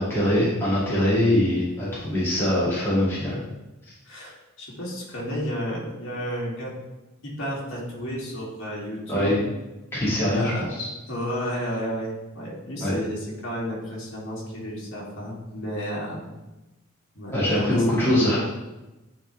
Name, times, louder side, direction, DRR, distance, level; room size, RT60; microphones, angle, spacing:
voice 1, 0.0-3.4 9.1-9.3 9.9-10.9 12.8-12.9 17.3-18.4, left 1 dB, 10° left, -10 dB, 2.3 m, -22 dB
voice 2, 4.1-6.7 7.2-9.4 10.3-10.6 11.1-16.3 17.1-18.2, equal, 60° left, -5 dB, 2.4 m, -32 dB
9.9 x 4.1 x 3.3 m, 1.0 s
head